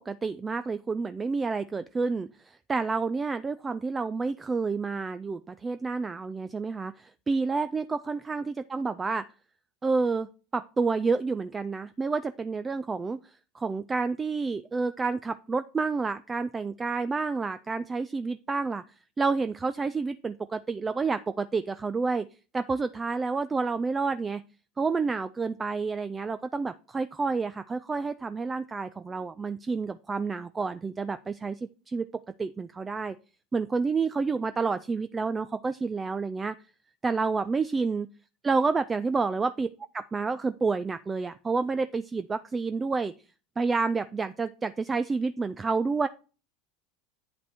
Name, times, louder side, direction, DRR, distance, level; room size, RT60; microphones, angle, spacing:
voice 1, 0.1-9.3 9.8-13.2 13.5-18.8 19.2-22.3 22.5-24.4 24.8-32.1 32.4-33.2 33.5-36.6 37.0-38.1 38.4-39.7 39.9-43.1 43.6-46.1, right 4 dB, 20° right, 12 dB, 0.4 m, -29 dB
8.8 x 5.2 x 4.4 m, 0.35 s
hypercardioid pair, 85°, 0 cm